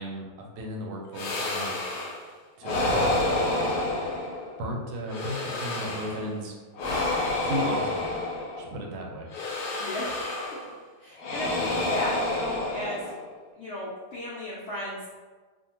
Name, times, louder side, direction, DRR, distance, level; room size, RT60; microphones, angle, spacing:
voice 1, 0.0-1.9 2.2-3.5 4.6-6.6 7.4-8.1 8.6-9.3, equal, 75° right, 0 dB, 1.1 m, -35 dB
sound 1, 1.1-2.2 2.6-4.6 5.1-6.3 6.7-8.7 9.3-10.7 11.2-13.3, left 2 dB, 70° left, 1.0 m, -29 dB
voice 2, 9.8-10.6 11.0-13.0 13.6-15.1, left 1 dB, 90° left, -7 dB, 0.6 m, -35 dB
2.6 x 2.4 x 2.9 m, 1.4 s
omnidirectional pair, 1.9 m